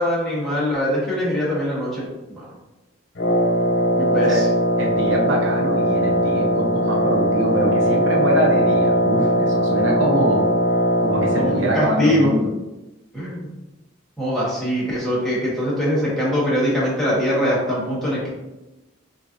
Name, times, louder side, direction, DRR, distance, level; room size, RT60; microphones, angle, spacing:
voice 1, 0.0-2.5 3.9-4.5 11.4-12.3 13.1-13.5 14.2-18.3, equal, ahead, -8 dB, 1.4 m, -22 dB
Wind instrument woodwind instrument, 3.2-11.7, equal, 60° left, 0.9 m, -19 dB
voice 2, 4.8-10.5 11.0-12.5, right 1 dB, 70° right, -1 dB, 0.7 m, -24 dB
6.4 x 2.7 x 2.5 m, 1.0 s
head